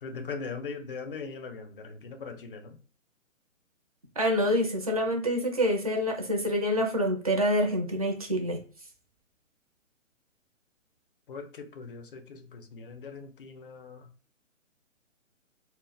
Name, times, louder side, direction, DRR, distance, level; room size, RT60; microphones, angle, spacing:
voice 1, 0.0-2.8 11.3-14.1, left 4 dB, 45° left, 0.4 m, -40 dB
voice 2, 4.2-8.6, equal, 30° right, 0.4 m, -26 dB
2.0 x 2.0 x 3.7 m
hypercardioid pair, 150°, 39 cm